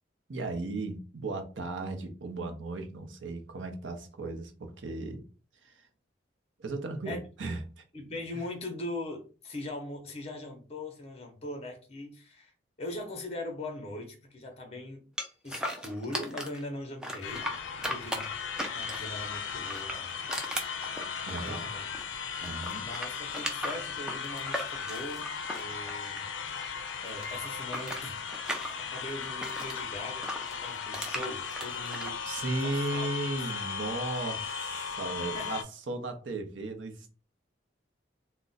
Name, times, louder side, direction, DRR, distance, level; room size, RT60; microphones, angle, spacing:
voice 1, 0.3-5.2 5.6-5.9 6.6-7.8 21.3-21.7 22.4-22.9 32.2-37.1, right 2 dB, 90° right, 0.6 m, -36 dB
voice 2, 7.9-12.5 12.8-15.0 15.4-17.5 17.8-18.3 18.7-20.2 21.1-21.8 22.8-26.3 27.0-28.2 28.9-30.2 30.6-33.1 34.2-34.4 35.3-35.5, left 1 dB, 35° left, 0.7 m, -40 dB
sound 1, 15.2-16.6 17.0-19.2 19.6-22.1 22.4-26.6 26.8-29.8 30.2-32.1, equal, 5° right, 0.4 m, -37 dB
sound 2, 17.2-35.6, left 6 dB, 85° left, 0.4 m, -37 dB
2.4 x 2.1 x 3.9 m
head